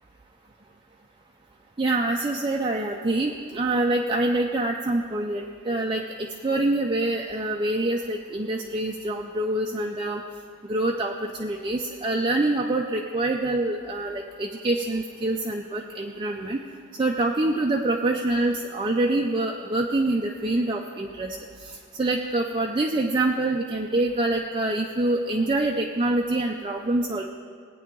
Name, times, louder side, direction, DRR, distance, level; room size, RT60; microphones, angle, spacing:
voice 1, 1.8-10.2 10.6-16.6 17.0-21.4 21.6-27.3, right 2 dB, 20° right, 0 dB, 0.5 m, -25 dB
17.0 x 9.3 x 3.8 m, 2.2 s
head